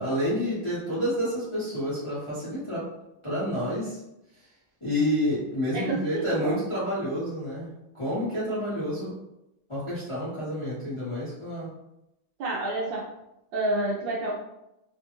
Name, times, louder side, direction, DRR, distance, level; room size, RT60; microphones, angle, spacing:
voice 1, 0.0-2.9 3.2-4.0 4.8-9.2 9.7-11.7, equal, 25° left, -11 dB, 0.7 m, -29 dB
voice 2, 5.7-6.6 12.4-13.1 13.5-14.4, right 2 dB, 75° right, -4 dB, 1.1 m, -29 dB
3.4 x 2.3 x 2.9 m, 0.87 s
omnidirectional pair, 2.3 m